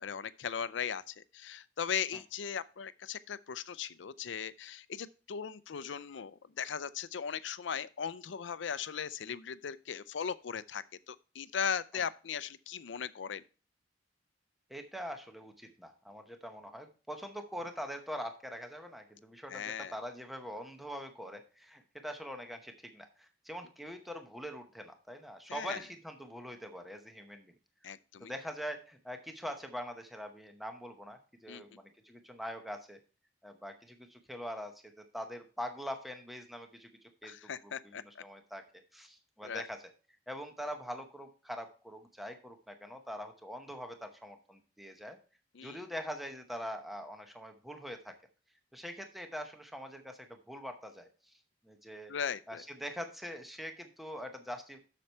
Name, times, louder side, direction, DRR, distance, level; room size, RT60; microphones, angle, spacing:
voice 1, 0.0-13.4 19.5-19.9 25.5-25.8 27.8-28.3 31.5-31.6 37.2-38.2 39.4-39.7 45.6-45.8 52.1-52.6, left 7 dB, 85° left, 0.5 m, -38 dB
voice 2, 14.7-27.5 28.2-33.0 33.4-34.7 35.1-37.4 37.6-38.6 38.9-39.9 40.3-45.2 45.6-48.1 48.7-51.4 51.6-52.1 52.5-54.8, equal, ahead, 0.8 m, -43 dB
7.5 x 6.8 x 4.4 m
head